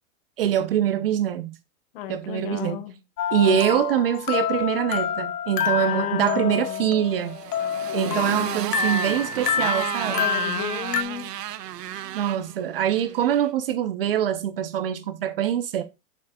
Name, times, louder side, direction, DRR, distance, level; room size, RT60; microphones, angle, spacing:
voice 1, 0.4-1.5 2.1-2.8 3.3-7.4 7.9-10.3 12.1-15.8, right 10 dB, 40° right, 0.5 m, -24 dB
voice 2, 1.9-2.9 3.4-3.6 5.8-6.9 7.9-8.6 10.1-11.3, left 11 dB, 40° left, 1.0 m, -33 dB
sound 1, 3.2-11.0, left 8 dB, 80° left, 1.2 m, -28 dB
Motorcycle, 7.0-13.5, right 12 dB, 85° right, 0.8 m, -33 dB
7.8 x 7.2 x 2.2 m
hypercardioid pair, 155°, 47 cm